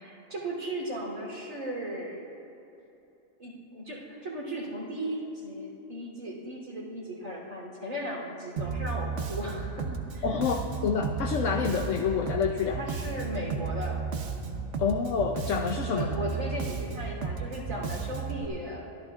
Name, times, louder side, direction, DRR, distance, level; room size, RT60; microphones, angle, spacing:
voice 1, 0.0-2.3 3.4-9.9 10.1-10.3 10.6-10.8 12.7-14.0 15.9-18.9, right 1 dB, 85° right, -4 dB, 3.8 m, -36 dB
Bass guitar, 8.6-18.4, right 5 dB, 65° right, 1.2 m, -34 dB
voice 2, 10.2-12.8 14.8-16.2, left 6 dB, 70° left, 2 dB, 1.0 m, -28 dB
23.0 x 14.0 x 2.5 m, 2.9 s
omnidirectional pair, 1.4 m